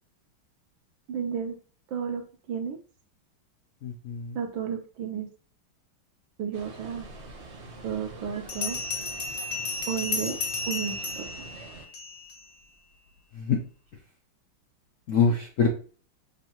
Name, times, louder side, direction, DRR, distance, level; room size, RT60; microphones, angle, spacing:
voice 1, 1.1-1.5 1.9-2.2 2.5-2.8 4.3-5.3 6.4-7.1 7.8-8.8 9.9-10.4 10.7-11.5, right 7 dB, 70° right, 4 dB, 1.5 m, -32 dB
voice 2, 3.8-4.4 13.3-13.6 15.1-15.7, left 5 dB, 65° left, 0 dB, 0.7 m, -24 dB
sound 1, 6.5-11.9, right 3 dB, 45° right, 1.1 m, -45 dB
Bell, 7.3-7.4 8.5-12.4, left 3 dB, 45° left, 1.4 m, -33 dB
6.7 x 2.7 x 2.9 m, 0.40 s
omnidirectional pair, 2.2 m